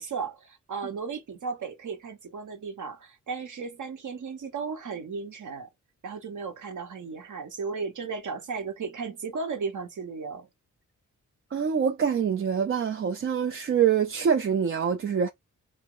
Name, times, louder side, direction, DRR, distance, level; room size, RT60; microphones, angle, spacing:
voice 1, 0.0-5.7 6.0-10.5, right 5 dB, 70° right, 0.8 m, -35 dB
voice 2, 11.5-15.3, right 7 dB, 40° right, 0.4 m, -25 dB
3.0 x 2.1 x 3.6 m
cardioid pair, 85°, 32 cm